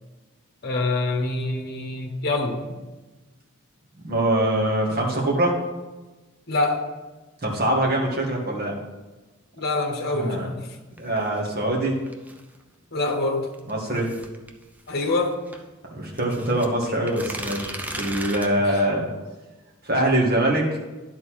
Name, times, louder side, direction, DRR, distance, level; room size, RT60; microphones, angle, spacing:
voice 1, 0.6-2.6 6.5-6.8 9.6-10.6 12.9-13.5 14.9-15.4, left 2 dB, 45° left, 1 dB, 1.1 m, -25 dB
voice 2, 4.0-5.6 7.4-8.8 10.1-10.5 11.0-12.0 13.7-14.1 15.9-19.1 19.8-20.8, right 1 dB, 45° right, -2 dB, 1.8 m, -23 dB
sound 1, 11.0-12.6 13.5-15.6 16.1-18.5, right 1 dB, 5° right, 0.5 m, -36 dB
10.5 x 4.0 x 6.3 m, 1.2 s
head